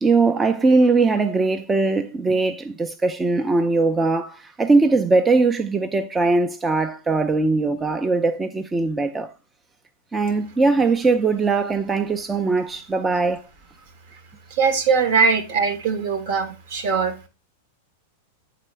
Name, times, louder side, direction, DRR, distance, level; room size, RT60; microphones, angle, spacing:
voice 1, 0.0-9.3 10.1-13.4, right 3 dB, 15° right, 0.4 m, -20 dB
voice 2, 14.5-17.3, right 5 dB, 60° right, 1.0 m, -21 dB
8.0 x 3.8 x 3.2 m
hypercardioid pair, 100°, 0 cm